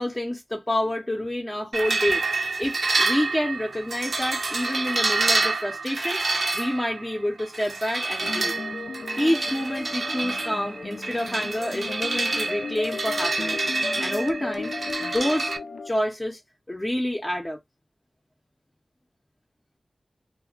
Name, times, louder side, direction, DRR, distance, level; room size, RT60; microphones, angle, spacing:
voice 1, 0.0-6.2 6.5-8.5 9.2-13.7 14.0-14.7 15.0-15.5 15.8-16.4 16.7-17.6, left 1 dB, 15° left, 0.5 m, -28 dB
sound 1, 1.7-15.6, right 3 dB, 65° right, 0.5 m, -28 dB
sound 2, 8.2-15.9, left 4 dB, 80° left, 0.3 m, -35 dB
2.1 x 2.1 x 3.8 m
wide cardioid pair, 85°, 0 cm